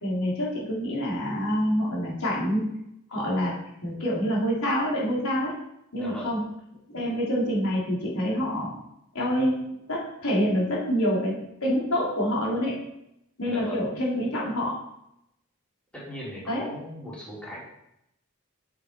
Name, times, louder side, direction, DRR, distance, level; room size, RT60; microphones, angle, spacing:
voice 1, 0.0-2.6 3.1-3.5 3.8-5.5 5.9-6.4 6.9-8.7 9.1-12.8 13.4-14.8 16.5-16.6, equal, 80° left, -5 dB, 3.9 m, -26 dB
voice 2, 6.0-6.3 13.4-13.9 15.9-17.6, equal, 5° left, -7 dB, 3.6 m, -38 dB
8.8 x 7.6 x 4.7 m, 0.80 s
head